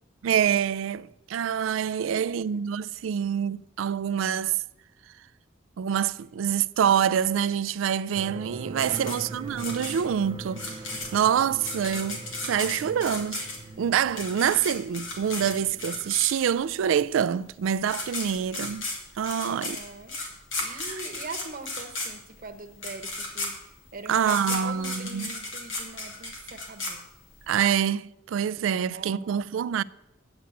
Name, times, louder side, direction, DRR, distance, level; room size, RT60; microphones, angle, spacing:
voice 1, 0.2-4.6 5.8-10.7 11.1-13.4 13.8-18.8 19.2-19.8 20.6-20.8 24.1-25.3 27.5-29.8, right 8 dB, 90° right, 0.3 m, -26 dB
sound 1, 8.1-16.3, right 3 dB, 30° right, 0.5 m, -42 dB
sound 2, 8.8-16.7 17.5-17.6 17.8-27.5, left 2 dB, 80° left, 2.4 m, -35 dB
voice 2, 8.9-9.5 19.3-20.2 20.6-27.1 28.8-29.4, right 3 dB, 45° right, 1.0 m, -42 dB
8.6 x 7.1 x 8.4 m
head